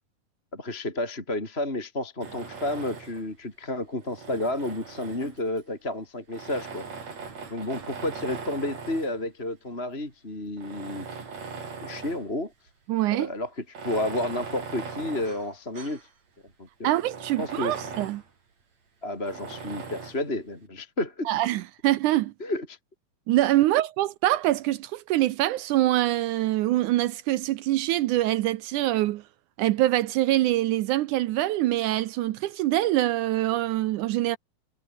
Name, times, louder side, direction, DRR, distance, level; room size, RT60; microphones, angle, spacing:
voice 1, 0.5-6.8 7.5-11.1 11.8-12.5 13.1-16.0 16.6-16.9 17.4-17.8 19.0-21.3 22.4-22.8, left 1 dB, 15° left, 4.2 m, -31 dB
Tools, 2.2-3.3 4.0-5.6 6.3-9.2 9.9-10.0 10.5-12.3 12.7-12.8 13.6-16.1 16.5-16.6 16.9-18.3 19.3-20.3, right 5 dB, 50° right, 5.3 m, -40 dB
voice 2, 12.9-13.3 16.8-18.2 21.3-22.3 23.3-29.2 29.6-34.4, right 15 dB, 80° right, 1.9 m, -24 dB
omnidirectional pair, 4.2 m